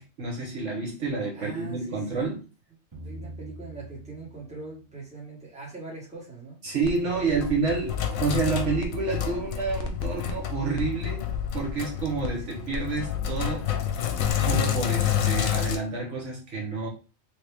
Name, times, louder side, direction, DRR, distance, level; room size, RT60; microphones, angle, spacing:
voice 1, 0.0-2.4 6.6-11.3 11.5-13.7 14.4-16.9, right 4 dB, 65° right, -1 dB, 1.2 m, -29 dB
voice 2, 1.3-2.2 3.0-6.6 7.2-7.3 12.5-12.8 14.6-15.1, right 3 dB, 5° right, -5 dB, 1.3 m, -42 dB
sound 1, 2.9-6.0, right 1 dB, 30° right, 0.5 m, -45 dB
sound 2, 6.8-7.0 7.3-8.9 9.1-14.3, left 3 dB, 60° left, 0.6 m, -38 dB
Sink (filling or washing), 6.9-15.8, left 10 dB, 90° left, 1.0 m, -29 dB
3.4 x 2.5 x 3.3 m, 0.34 s
omnidirectional pair, 1.4 m